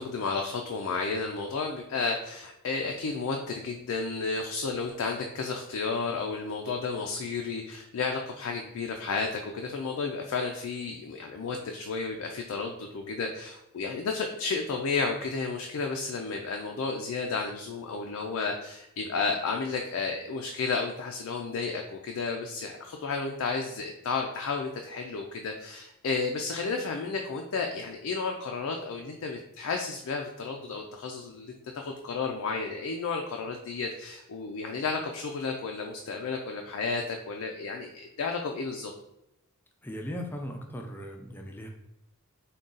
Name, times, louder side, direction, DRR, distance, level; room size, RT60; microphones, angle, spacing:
voice 1, 0.0-38.9, left 4 dB, 75° left, 2 dB, 0.4 m, -32 dB
voice 2, 39.8-41.7, equal, 10° left, 2 dB, 0.4 m, -38 dB
3.7 x 2.3 x 3.8 m, 0.86 s
head